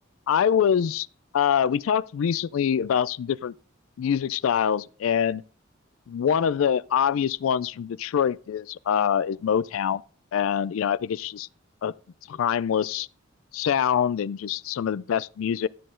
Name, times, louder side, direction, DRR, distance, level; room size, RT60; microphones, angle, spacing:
voice 1, 0.3-1.1 1.3-3.5 4.0-5.4 6.1-10.0 10.3-11.5 11.8-11.9 12.3-13.1 13.5-15.7, left 8 dB, 80° left, 0.3 m, -24 dB
12.0 x 7.7 x 3.7 m
head